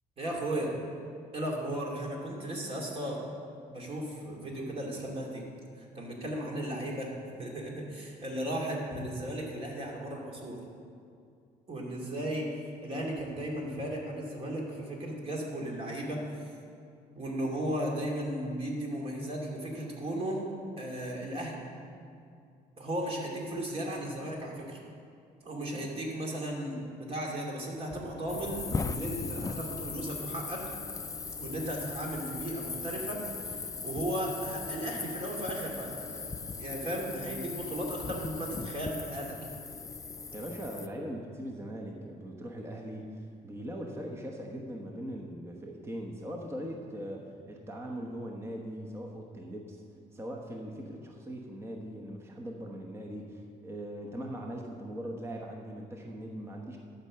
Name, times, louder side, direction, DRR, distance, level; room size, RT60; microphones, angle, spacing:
voice 1, 0.2-0.8 1.3-3.2 3.7-5.4 5.8-7.1 7.4-10.6 11.7-12.5 12.8-16.5 17.2-20.5 20.8-21.7 22.8-24.8 25.4-30.6 31.4-33.2 33.8-36.3 36.6-39.5, right 1 dB, 35° right, -1 dB, 2.6 m, -35 dB
sound 1, 28.3-40.9, left 4 dB, 20° left, 0.5 m, -38 dB
voice 2, 40.3-49.8 50.1-56.8, equal, 15° right, 1 dB, 1.1 m, -40 dB
12.0 x 5.7 x 7.6 m, 2.4 s
cardioid pair, 110°, 17 cm